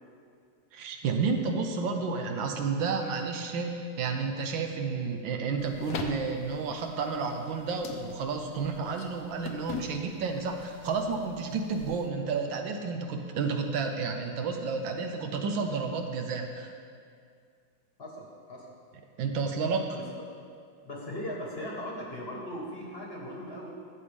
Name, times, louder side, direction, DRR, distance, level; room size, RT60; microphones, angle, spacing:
voice 1, 0.7-16.7 19.2-20.0, right 4 dB, 75° right, 4 dB, 1.4 m, -31 dB
sound 1, 5.6-12.1, left 5 dB, 65° left, 0.9 m, -43 dB
voice 2, 18.0-18.7 19.9-20.0 20.8-23.7, equal, 35° left, -3 dB, 1.1 m, -38 dB
13.5 x 7.5 x 3.4 m, 2.2 s
omnidirectional pair, 2.2 m